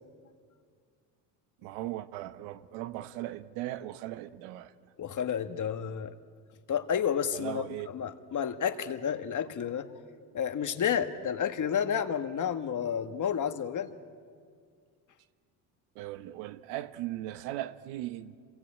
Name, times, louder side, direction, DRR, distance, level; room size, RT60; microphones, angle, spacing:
voice 1, 1.6-4.7 7.3-7.9 15.9-18.4, right 15 dB, 85° right, 1.2 m, -38 dB
voice 2, 5.0-6.1 6.7-9.9 10.3-13.9, left 8 dB, 40° left, 1.7 m, -31 dB
26.5 x 23.0 x 8.8 m
supercardioid pair, 90°, 44 cm